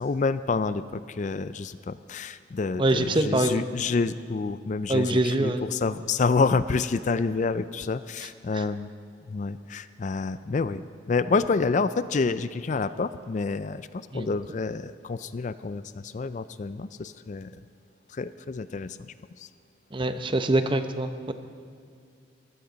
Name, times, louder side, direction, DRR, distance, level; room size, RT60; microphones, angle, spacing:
voice 1, 0.0-8.9 9.3-17.6 18.1-19.5, left 4 dB, 40° left, 14 dB, 0.4 m, -28 dB
voice 2, 2.8-3.6 4.9-5.6 14.1-14.3 19.9-21.3, right 2 dB, 25° right, 8 dB, 0.7 m, -24 dB
22.5 x 15.5 x 4.0 m, 2.4 s
head